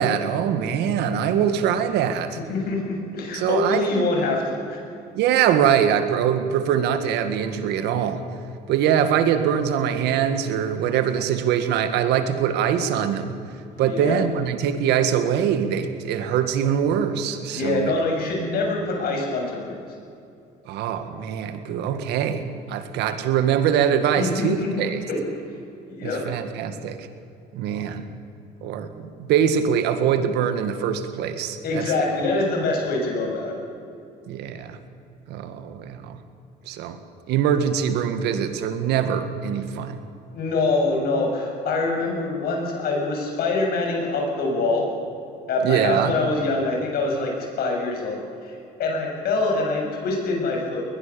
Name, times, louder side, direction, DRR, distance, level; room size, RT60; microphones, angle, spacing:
voice 1, 0.0-2.4 3.3-4.1 5.1-8.2 8.7-13.4 13.8-17.9 20.7-25.0 26.0-27.1 27.5-28.1 28.6-31.9 34.3-34.8 35.3-36.2 36.7-37.0 37.3-40.0 45.6-46.2, right 8 dB, 85° right, 9 dB, 1.9 m, -23 dB
voice 2, 2.5-4.8 13.8-14.2 17.5-19.8 24.2-25.2 25.9-26.2 31.6-33.5 40.3-44.9 45.5-50.8, left 3 dB, 65° left, 1 dB, 6.8 m, -25 dB
21.5 x 20.5 x 7.0 m, 2.6 s
cardioid pair, 110°, 17 cm